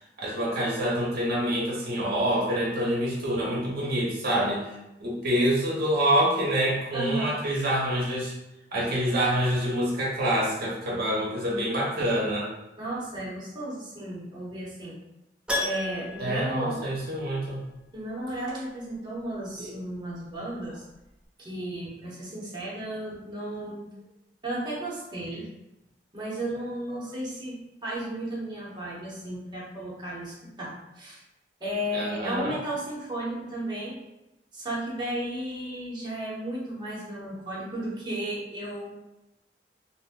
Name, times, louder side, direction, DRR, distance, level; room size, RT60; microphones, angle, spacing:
voice 1, 0.2-4.6 5.0-8.3 8.7-12.5 16.2-17.6 19.6-19.7 31.9-32.5, right 1 dB, 60° right, -5 dB, 0.7 m, -26 dB
voice 2, 6.9-7.4 12.8-15.0 15.6-16.8 17.9-20.8 21.4-23.9 24.4-25.5 26.1-27.5 27.8-31.2 31.6-33.9 34.5-39.0, right 1 dB, 25° right, -7 dB, 0.8 m, -34 dB
Keyboard (musical), 15.5-17.5 17.8-17.9 20.6-20.7 20.9-21.0, left 2 dB, 5° right, 0.4 m, -33 dB
2.5 x 2.1 x 3.5 m, 0.92 s
head